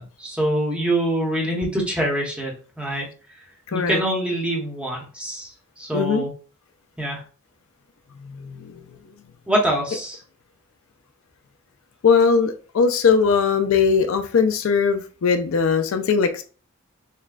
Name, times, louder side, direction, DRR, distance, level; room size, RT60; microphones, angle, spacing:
voice 1, 0.0-3.1 3.7-5.5 5.8-6.3 7.0-7.2 9.5-10.2, right 1 dB, 5° right, 0.9 m, -24 dB
voice 2, 3.7-4.0 5.9-6.2 8.2-8.8 12.0-16.4, left 5 dB, 65° left, 0.4 m, -20 dB
6.4 x 2.2 x 2.4 m
head